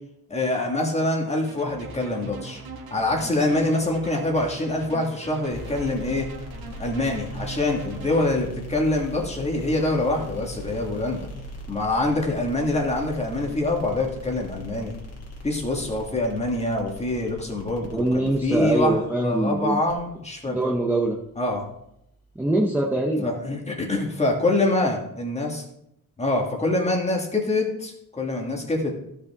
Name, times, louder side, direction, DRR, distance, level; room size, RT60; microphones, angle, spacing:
voice 1, 0.3-2.6 2.9-6.3 6.8-11.3 11.7-15.0 15.4-20.6 21.4-21.6 23.2-25.6 26.2-28.9, left 2 dB, 20° left, 0 dB, 1.7 m, -25 dB
sound 1, 1.5-8.3, right 3 dB, 80° right, 1.6 m, -40 dB
sound 2, 5.5-22.5, equal, 45° left, 2.3 m, -41 dB
voice 2, 17.9-19.8 20.5-21.1 22.4-23.3, right 1 dB, 5° right, -1 dB, 0.8 m, -23 dB
14.5 x 5.6 x 3.6 m, 0.78 s
wide cardioid pair, 170°, 36 cm